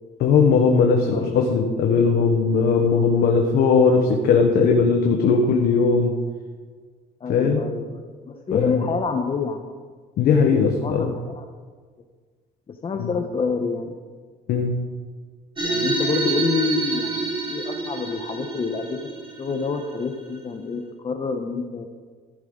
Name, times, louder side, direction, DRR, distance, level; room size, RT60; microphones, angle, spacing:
voice 1, 0.2-6.1 7.3-7.6 8.5-8.7 10.2-11.1 13.0-13.1 14.5-14.8, left 5 dB, 70° left, 2 dB, 1.3 m, -19 dB
voice 2, 1.0-1.5 7.2-9.7 10.3-11.4 12.7-14.0 15.6-19.0 19.4-21.9, left 5 dB, 35° left, 4 dB, 1.1 m, -27 dB
sound 1, 15.6-20.4, right 3 dB, 30° right, 3.1 m, -27 dB
14.5 x 10.0 x 3.9 m, 1.5 s
cardioid pair, 110°, 17 cm